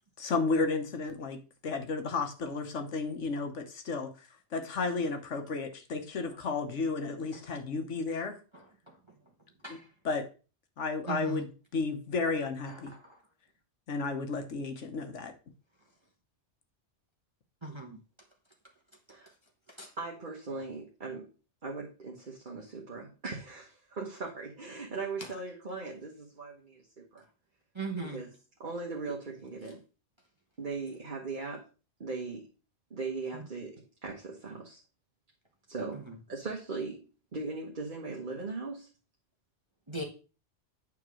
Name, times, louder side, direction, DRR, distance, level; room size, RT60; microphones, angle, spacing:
voice 1, 0.2-4.1 4.5-8.4 9.7-9.8 10.0-10.3 10.8-12.9 13.9-15.3, left 4 dB, 80° left, 1.4 m, -33 dB
voice 2, 11.1-11.4 17.6-18.0 19.8-19.9 27.8-28.2 39.9-40.0, right 3 dB, 25° right, 1.2 m, -37 dB
voice 3, 20.0-21.3 21.6-27.2 28.0-29.8 30.6-31.6 32.0-32.5 32.9-34.8 35.7-38.9, right 3 dB, 45° right, 1.4 m, -39 dB
9.0 x 3.6 x 6.2 m
omnidirectional pair, 1.2 m